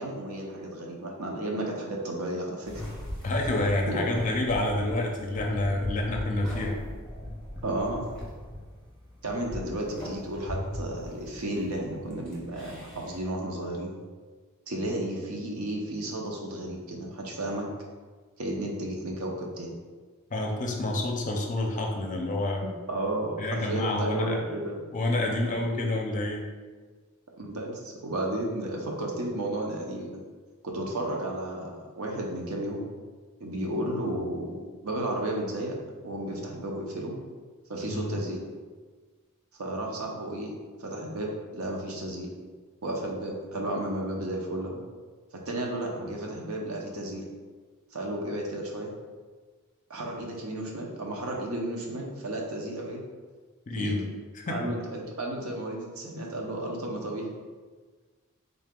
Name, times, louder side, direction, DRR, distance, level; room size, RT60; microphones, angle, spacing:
voice 1, 0.0-2.9 3.9-4.3 7.6-8.0 9.2-13.9 14.7-17.7 18.4-19.7 22.9-24.9 27.4-30.2 30.6-32.8 33.4-35.8 36.0-37.2 37.7-38.4 39.6-40.5 40.8-42.3 42.8-44.8 45.5-47.3 47.9-48.9 49.9-53.0 53.8-54.0 54.5-57.3, right 1 dB, 80° right, 0 dB, 0.8 m, -33 dB
sound 1, 2.6-13.2, left 1 dB, 5° left, 0.9 m, -39 dB
voice 2, 3.2-6.8 20.3-22.6 23.4-24.4 24.9-26.4 37.9-38.2 53.7-54.0 54.4-54.7, left 1 dB, 35° left, 1 dB, 0.5 m, -28 dB
3.8 x 2.8 x 3.6 m, 1.4 s
head